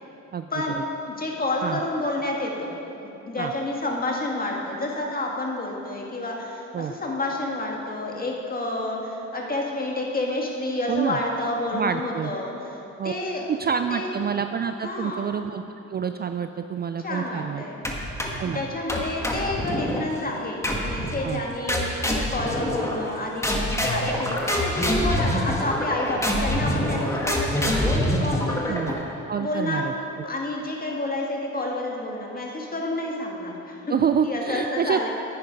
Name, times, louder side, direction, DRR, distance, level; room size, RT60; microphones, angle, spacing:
voice 1, 0.5-2.7 3.2-13.5 13.9-14.1 14.8-15.3 17.0-17.8 18.5-28.8 29.4-29.9 30.2-34.0 34.2-35.1, left 2 dB, 30° left, -1 dB, 1.9 m, -29 dB
voice 2, 10.9-11.2 11.7-12.3 13.0-13.1 13.5-15.6 15.9-17.6 18.4-18.6 21.2-21.4 28.7-28.9 29.3-29.9 30.2-30.3 33.9-35.1, right 7 dB, 35° right, 8 dB, 0.4 m, -27 dB
sound 1, 17.8-18.5 18.9-20.1 20.6-21.2 21.7-23.1 23.4-29.1, left 1 dB, 10° left, 1.5 m, -25 dB
10.0 x 9.3 x 5.2 m, 2.9 s
cardioid pair, 90°, 30 cm